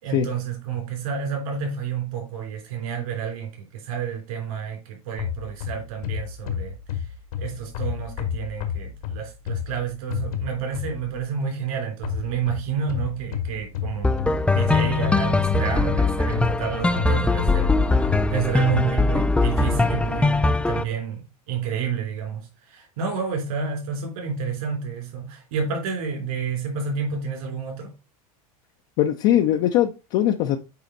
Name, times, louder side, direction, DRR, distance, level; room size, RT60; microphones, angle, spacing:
voice 1, 0.0-7.0 7.4-27.9, right 6 dB, 70° right, 3.4 m, -30 dB
sound 1, 5.2-11.2 12.0-18.9, left 9 dB, 70° left, 1.8 m, -32 dB
sound 2, 14.0-20.8, left 3 dB, 5° left, 0.5 m, -21 dB
voice 2, 29.0-30.6, left 12 dB, 55° left, 0.8 m, -20 dB
8.5 x 4.2 x 3.9 m
hypercardioid pair, 95°, 19 cm